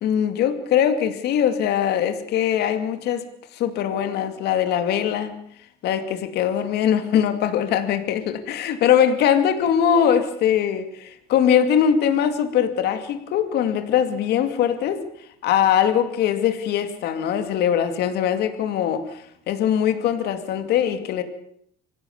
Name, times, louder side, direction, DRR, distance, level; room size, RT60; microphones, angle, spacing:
voice 1, 0.0-3.3 3.5-5.3 5.8-15.0 15.4-21.2, left 9 dB, 80° left, 9 dB, 2.3 m, -21 dB
25.0 x 16.5 x 7.1 m, 0.67 s
cardioid pair, 110°, 17 cm